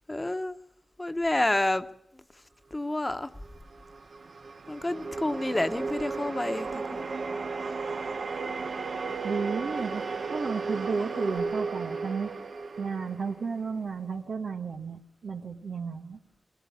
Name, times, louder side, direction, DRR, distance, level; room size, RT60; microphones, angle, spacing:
voice 1, 0.1-0.6 1.0-1.8 2.1-2.2 2.7-3.3 4.7-7.1 10.7-11.3, left 1 dB, 25° left, 10 dB, 1.1 m, -29 dB
sound 1, 3.4-13.8, right 4 dB, 70° right, 1.0 m, -34 dB
voice 2, 9.2-10.0 10.3-12.3 12.8-16.2, right 5 dB, 85° right, 3 dB, 1.3 m, -33 dB
20.5 x 16.0 x 8.7 m, 0.74 s
cardioid pair, 60°, 0 cm